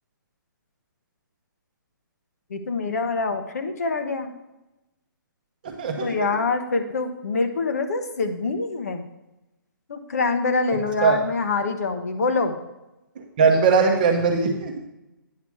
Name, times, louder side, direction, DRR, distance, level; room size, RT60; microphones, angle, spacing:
voice 1, 2.5-4.3 6.0-9.0 9.9-12.6, left 3 dB, 45° left, 7 dB, 1.0 m, -25 dB
voice 2, 5.6-6.1 11.0-11.2 13.4-14.8, right 5 dB, 25° right, 3 dB, 0.9 m, -20 dB
9.5 x 5.8 x 4.8 m, 0.95 s
hypercardioid pair, 175°, 11 cm